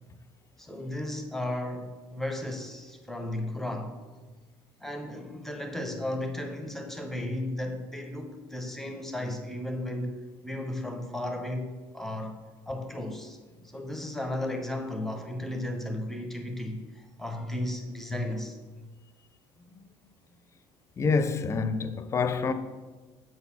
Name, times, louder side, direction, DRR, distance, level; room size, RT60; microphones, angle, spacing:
voice 1, 0.6-3.9 4.8-10.2 10.4-12.4 12.7-13.4 13.7-18.6 22.3-22.4, left 1 dB, 5° left, 0.8 m, -34 dB
voice 2, 21.0-22.5, left 4 dB, 30° left, 0.5 m, -27 dB
7.6 x 4.0 x 5.9 m
cardioid pair, 115°, 10 cm